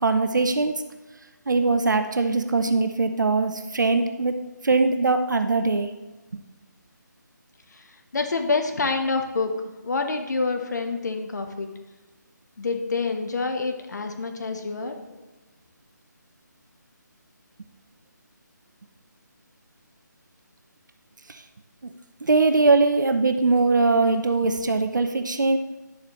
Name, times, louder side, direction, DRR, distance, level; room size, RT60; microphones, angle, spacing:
voice 1, 0.0-0.9 1.5-4.4 4.6-5.9 6.3-6.4 22.2-25.6, right 3 dB, 70° right, 8 dB, 0.7 m, -21 dB
voice 2, 8.1-9.5 9.8-11.7 12.6-15.2, left 4 dB, 60° left, 5 dB, 1.1 m, -27 dB
10.5 x 7.3 x 3.1 m, 1.1 s
figure-of-eight pair, 155°, 10 cm